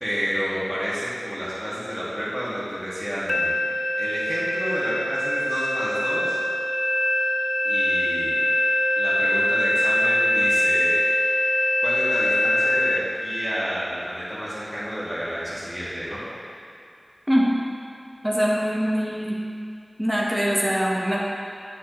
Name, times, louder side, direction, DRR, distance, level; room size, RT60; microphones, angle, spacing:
voice 1, 0.0-3.6 4.0-6.4 7.6-8.4 9.0-11.1 11.8-16.2, equal, 10° left, -10 dB, 2.0 m, -30 dB
sound 1, 3.3-13.0, left 1 dB, 55° left, 0.6 m, -23 dB
voice 2, 18.2-19.4 20.0-21.2, equal, 5° right, -4 dB, 1.1 m, -23 dB
9.0 x 7.3 x 3.1 m, 2.5 s
wide cardioid pair, 45°, 0 cm